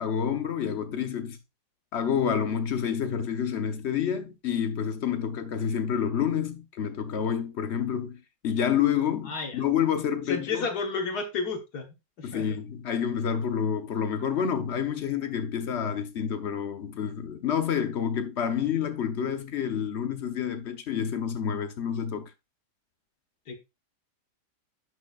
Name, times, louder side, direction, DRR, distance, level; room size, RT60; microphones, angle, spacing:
voice 1, 0.0-1.4 1.9-10.7 12.2-22.3, left 8 dB, 50° left, 1.0 m, -28 dB
voice 2, 9.3-9.6 10.3-11.9 12.2-12.4 23.5-23.6, left 4 dB, 65° left, 1.9 m, -31 dB
11.0 x 6.5 x 2.4 m
omnidirectional pair, 1.8 m